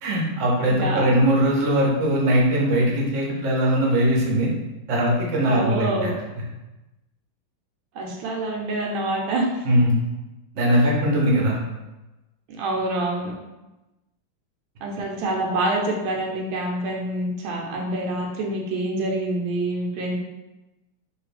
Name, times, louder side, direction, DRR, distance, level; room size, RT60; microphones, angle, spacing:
voice 1, 0.0-4.5 4.9-6.1 9.6-9.9 10.5-11.6, right 1 dB, 55° right, -3 dB, 0.9 m, -20 dB
voice 2, 0.7-1.1 5.4-6.1 7.9-9.6 12.5-13.3 14.8-20.1, right 2 dB, 85° right, -1 dB, 1.5 m, -26 dB
3.2 x 2.7 x 3.2 m, 1.0 s
omnidirectional pair, 2.2 m